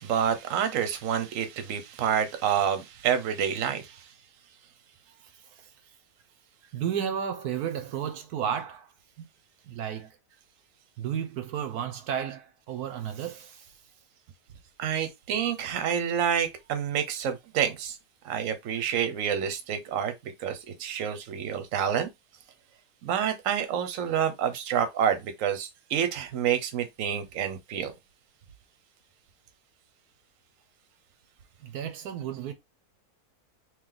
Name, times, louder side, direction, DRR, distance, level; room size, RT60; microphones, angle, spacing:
voice 1, 0.0-4.0 14.8-18.0 18.2-22.1 23.0-27.9, right 8 dB, 60° right, 1.1 m, -28 dB
voice 2, 6.7-8.9 9.2-9.3 9.6-10.2 11.0-13.8 31.6-32.5, right 8 dB, 80° right, 1.1 m, -33 dB
3.2 x 3.0 x 3.8 m
omnidirectional pair, 1.7 m